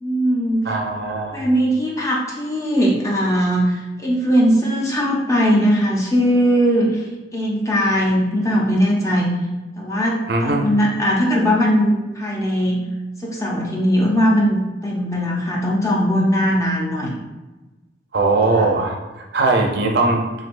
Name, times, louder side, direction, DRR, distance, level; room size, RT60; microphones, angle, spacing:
voice 1, 0.0-0.7 1.3-9.3 9.8-12.8 13.2-17.2 18.5-18.7, equal, 15° left, -3 dB, 0.6 m, -19 dB
voice 2, 0.6-1.4 10.3-10.6 18.1-19.0 19.3-20.2, right 3 dB, 55° right, 1 dB, 0.5 m, -19 dB
3.9 x 3.2 x 2.5 m, 1.1 s
head